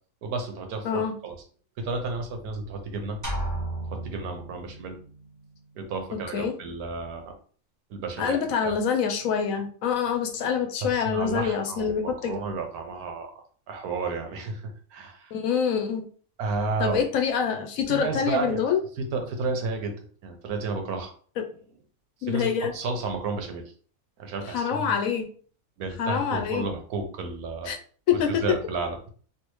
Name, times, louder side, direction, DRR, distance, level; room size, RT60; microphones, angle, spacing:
voice 1, 0.2-1.4 1.8-3.2 3.9-5.0 5.8-7.4 7.9-8.8 10.8-13.3 13.7-15.3 16.4-17.0 17.9-18.7 19.0-19.9 20.2-21.1 22.2-23.7 24.2-25.1 25.8-27.7 28.3-29.1, right 4 dB, 85° right, 4 dB, 1.3 m, -32 dB
voice 2, 0.8-1.1 6.1-6.5 8.2-12.3 15.3-16.0 16.8-18.8 21.4-21.5 22.2-22.7 24.5-25.3 26.0-26.7 27.7-27.8 28.1-28.4, left 7 dB, 70° left, 5 dB, 1.0 m, -26 dB
sound 1, 3.2-5.1, right 1 dB, 15° right, 0.8 m, -33 dB
3.4 x 2.7 x 3.0 m, 0.44 s
omnidirectional pair, 1.6 m